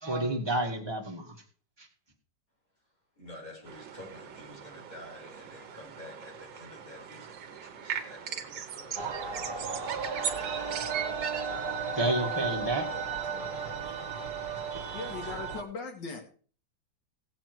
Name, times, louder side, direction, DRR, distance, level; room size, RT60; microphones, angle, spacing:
voice 1, 0.0-1.4 1.8-1.9 12.0-12.9, right 1 dB, 15° right, 1 dB, 1.9 m, -30 dB
voice 2, 3.2-12.1 12.8-13.9 15.1-15.4, left 1 dB, 50° left, -1 dB, 4.7 m, -50 dB
sound 1, 3.7-15.4, right 8 dB, 80° right, 1.7 m, -41 dB
sound 2, 9.0-15.6, right 5 dB, 60° right, 1.7 m, -35 dB
voice 3, 14.9-16.2, left 3 dB, 75° left, 3 dB, 2.8 m, -38 dB
16.5 x 7.4 x 4.6 m, 0.42 s
omnidirectional pair, 2.0 m